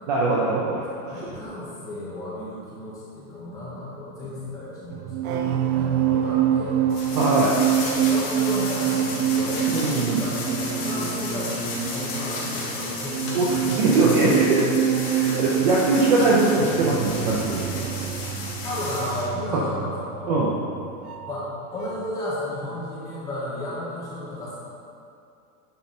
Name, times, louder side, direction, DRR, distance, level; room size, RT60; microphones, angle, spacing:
voice 1, 0.1-0.8 7.1-7.5 9.7-10.2 13.3-14.7 15.1-17.9 19.5-19.6 20.3-20.6, right 2 dB, 30° right, -4 dB, 0.5 m, -21 dB
voice 2, 1.0-6.8 7.4-9.6 10.1-14.0 15.1-15.2 15.5-15.7 18.6-20.4 21.3-24.6, left 1 dB, 10° left, -8 dB, 1.1 m, -34 dB
sound 1, 4.9-21.5 21.8-22.1, right 9 dB, 90° right, 0.7 m, -26 dB
sound 2, 6.9-19.3, left 3 dB, 30° left, 1.8 m, -33 dB
9.4 x 5.2 x 4.3 m, 2.5 s
supercardioid pair, 180°, 43 cm